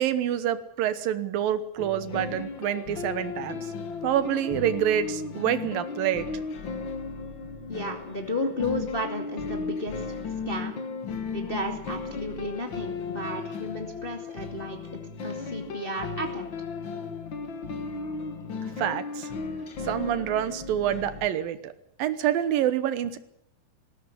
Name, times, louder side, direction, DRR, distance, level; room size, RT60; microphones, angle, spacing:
voice 1, 0.0-3.7 4.0-6.3 18.8-19.3 19.8-21.7 22.0-23.2, right 10 dB, 75° right, 13 dB, 2.7 m, -27 dB
sound 1, 1.8-21.3, left 4 dB, 50° left, 1.5 m, -35 dB
voice 2, 7.7-10.2 10.4-10.8 11.3-16.5, left 1 dB, 20° left, 3 dB, 1.7 m, -33 dB
19.5 x 16.0 x 9.8 m, 0.75 s
omnidirectional pair, 4.3 m